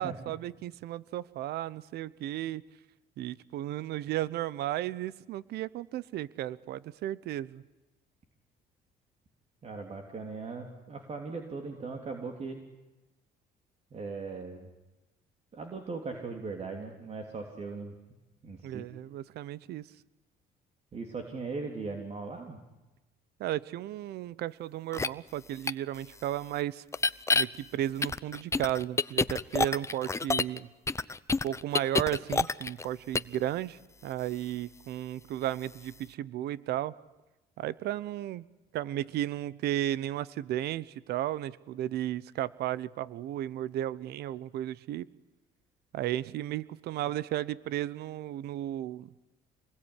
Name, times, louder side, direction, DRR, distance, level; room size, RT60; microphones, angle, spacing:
voice 1, 0.0-2.6 3.2-7.6 18.6-19.9 23.4-26.8 27.3-30.7 31.4-36.9 37.6-38.4 38.7-45.1 45.9-49.1, right 13 dB, 75° right, 19 dB, 0.9 m, -34 dB
voice 2, 9.6-12.6 13.9-14.7 15.5-17.9 18.4-18.8 20.9-22.6, right 4 dB, 40° right, 4 dB, 3.4 m, -39 dB
sound 1, 24.9-25.1 25.7-25.8 26.9-27.4 28.0-30.6 30.9-32.9 33.1-33.4, left 3 dB, 15° left, 0.8 m, -27 dB
27.5 x 21.5 x 9.9 m, 1.1 s
cardioid pair, 110°, 17 cm